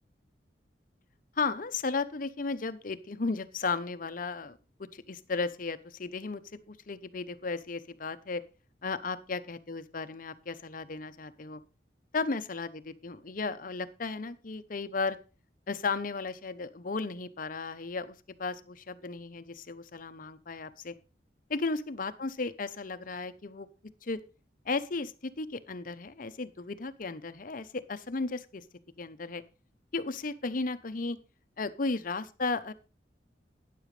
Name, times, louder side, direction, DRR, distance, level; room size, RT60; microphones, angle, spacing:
voice 1, 1.4-4.6 4.9-6.4 6.7-8.4 8.8-11.6 12.1-15.2 15.7-20.9 21.5-23.7 24.0-24.2 24.7-28.6 29.0-29.4 29.9-31.2 31.6-32.7, left 3 dB, 50° left, 12 dB, 0.8 m, -34 dB
12.5 x 10.0 x 3.3 m, 0.33 s
head